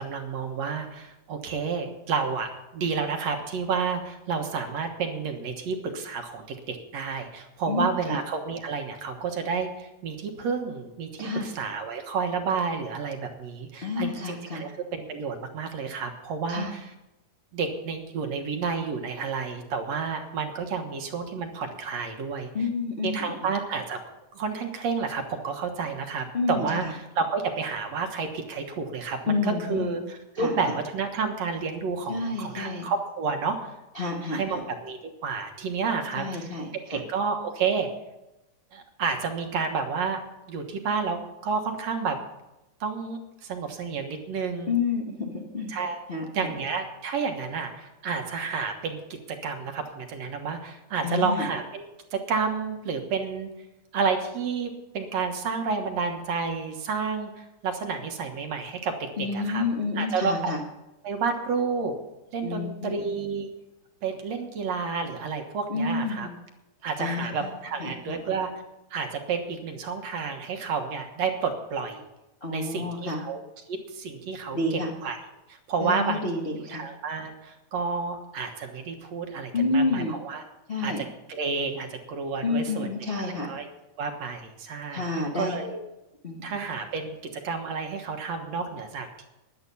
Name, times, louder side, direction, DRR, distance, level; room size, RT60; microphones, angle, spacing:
voice 1, 0.0-16.9 17.5-22.5 23.0-24.0 24.3-33.7 34.3-36.5 36.9-37.9 38.7-40.2 40.5-42.2 42.8-44.8 45.7-46.1 46.3-49.0 49.4-53.5 53.9-59.6 60.0-60.5 61.0-61.9 62.3-63.5 64.0-66.3 66.8-68.5 68.9-72.0 72.5-73.4 73.7-75.2 75.7-76.2 76.7-80.4 80.8-82.9 83.2-83.7 84.0-85.0 85.4-85.8 86.4-89.3, right 5 dB, 60° right, 5 dB, 2.3 m, -30 dB
voice 2, 7.7-8.2 11.2-11.5 13.8-14.7 16.5-16.7 22.5-23.4 26.3-26.9 29.3-29.9 30.3-30.6 32.1-32.9 33.9-34.6 36.1-37.0 44.7-45.8 46.1-46.2 51.0-51.5 59.2-60.6 62.4-63.0 65.7-66.3 67.0-67.5 67.8-68.2 72.4-73.2 74.5-74.9 75.8-76.8 79.5-80.2 80.7-81.0 82.4-83.5 84.9-85.6 86.2-86.4, left 3 dB, 65° left, -1 dB, 0.5 m, -29 dB
13.0 x 10.5 x 5.6 m, 0.95 s
omnidirectional pair, 3.7 m